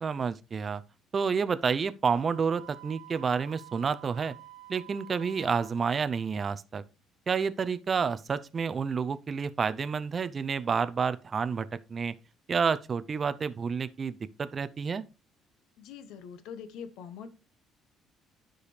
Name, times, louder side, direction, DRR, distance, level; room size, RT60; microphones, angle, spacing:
voice 1, 0.0-0.8 1.1-4.3 4.7-6.8 7.3-12.1 12.5-15.0, right 5 dB, 30° right, 0.5 m, -29 dB
Wind instrument woodwind instrument, 2.1-5.8, right 15 dB, 75° right, 1.3 m, -50 dB
voice 2, 15.8-17.3, left 7 dB, 85° left, 1.0 m, -43 dB
12.0 x 5.0 x 3.2 m
cardioid pair, 155°, 0 cm